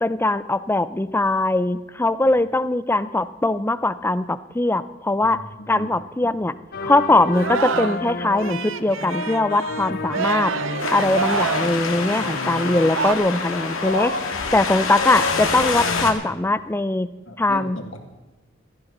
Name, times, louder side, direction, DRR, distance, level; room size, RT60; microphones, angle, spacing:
voice 1, 0.0-6.5 6.8-10.5 10.9-14.1 14.5-17.1 17.4-17.8, left 2 dB, 10° left, 14 dB, 0.5 m, -21 dB
voice 2, 5.6-5.9 6.2-6.4 9.9-10.0 11.0-11.1 17.3-18.0, left 1 dB, 70° left, 4 dB, 2.1 m, -37 dB
sound 1, 6.7-12.9, left 3 dB, 50° left, 0.7 m, -32 dB
Singing, 7.3-8.1 8.4-13.2, right 5 dB, 70° right, 0.7 m, -27 dB
Wind, 10.8-16.1, left 4 dB, 90° left, 2.1 m, -26 dB
17.0 x 14.5 x 3.9 m, 1.1 s
head